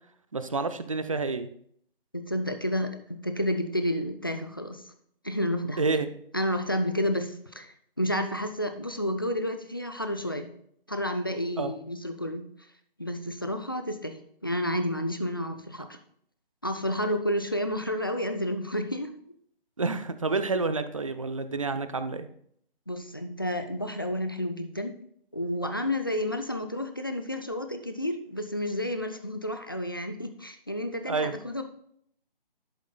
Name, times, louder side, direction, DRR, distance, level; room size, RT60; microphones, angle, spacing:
voice 1, 0.3-1.5 5.8-6.1 11.6-11.7 19.8-22.3 31.1-31.3, right 3 dB, 35° right, 10 dB, 0.5 m, -29 dB
voice 2, 2.1-4.8 5.2-5.9 6.3-10.5 10.9-12.4 13.0-16.0 16.6-19.1 22.9-24.9 25.3-31.6, left 1 dB, 25° left, 6 dB, 0.4 m, -30 dB
11.0 x 7.9 x 2.2 m, 0.66 s
figure-of-eight pair, 155°, 29 cm